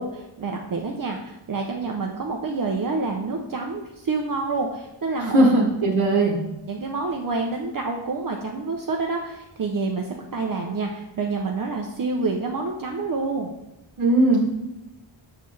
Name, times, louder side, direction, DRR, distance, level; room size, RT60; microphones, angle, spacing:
voice 1, 0.0-5.5 6.7-13.5, right 3 dB, 45° right, 1 dB, 0.7 m, -28 dB
voice 2, 5.2-6.4 14.0-14.4, right 2 dB, 80° right, -1 dB, 1.1 m, -18 dB
7.4 x 6.7 x 3.2 m, 0.94 s
wide cardioid pair, 160°, 48 cm